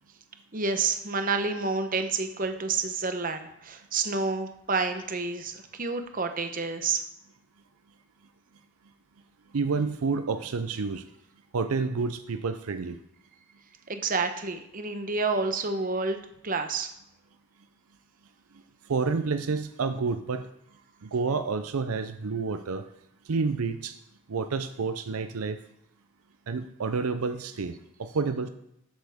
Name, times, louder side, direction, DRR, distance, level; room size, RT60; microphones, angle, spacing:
voice 1, 0.5-7.0 13.9-16.2 16.4-16.9, right 4 dB, 40° right, 7 dB, 0.9 m, -29 dB
voice 2, 9.5-11.0 11.5-13.0 18.9-20.5 21.0-22.9 23.3-24.0 24.3-25.6 26.5-27.7 28.0-28.5, right 4 dB, 75° right, 10 dB, 0.5 m, -29 dB
13.0 x 7.9 x 3.6 m, 0.79 s
head